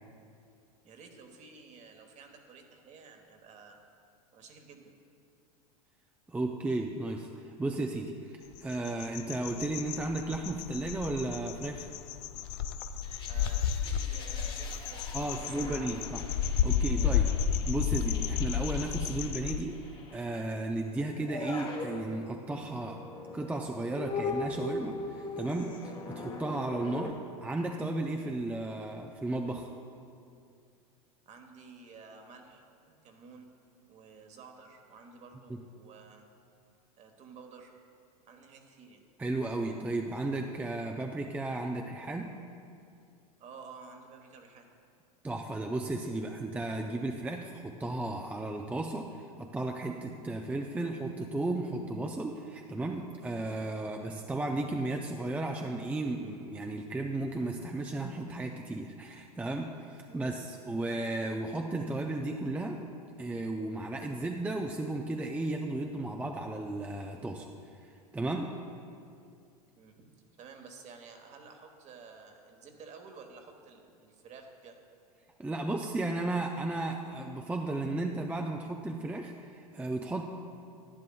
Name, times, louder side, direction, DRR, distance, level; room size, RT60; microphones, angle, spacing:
voice 1, 0.8-3.8 4.3-4.9 13.3-16.0 16.7-18.0 31.3-33.5 33.9-36.3 37.0-37.7 38.3-39.0 43.4-44.7 60.1-60.3 69.7-70.0 70.4-74.8, right 5 dB, 35° right, 4 dB, 1.2 m, -52 dB
voice 2, 6.3-11.9 15.1-16.2 16.6-17.3 17.7-19.8 20.1-23.0 23.3-29.7 35.5-35.6 39.2-42.3 45.2-49.1 49.4-62.8 63.2-67.5 68.1-68.5 75.4-80.2, right 2 dB, 10° right, 2 dB, 0.4 m, -34 dB
sound 1, 8.5-19.6, left 8 dB, 50° left, 0.4 m, -32 dB
sound 2, 13.0-20.4 21.1-27.1, left 3 dB, 25° left, 1.0 m, -41 dB
11.0 x 10.5 x 2.3 m, 2.4 s
hypercardioid pair, 95°, 20 cm